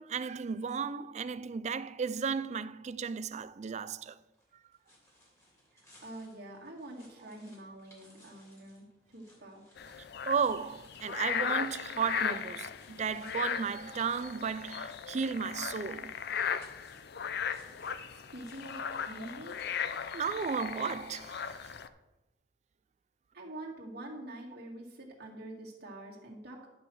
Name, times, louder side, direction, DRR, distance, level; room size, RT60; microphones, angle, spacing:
voice 1, 0.0-4.2 10.3-16.2 20.1-21.7, right 6 dB, 35° right, 0.4 m, -34 dB
sound 1, 4.2-21.4, left 1 dB, 15° left, 3.1 m, -64 dB
voice 2, 5.7-9.6 18.1-19.7 23.3-26.7, right 1 dB, 60° right, 2.0 m, -46 dB
sound 2, 9.8-21.9, left 7 dB, 60° left, 0.5 m, -37 dB
11.0 x 5.4 x 6.2 m
head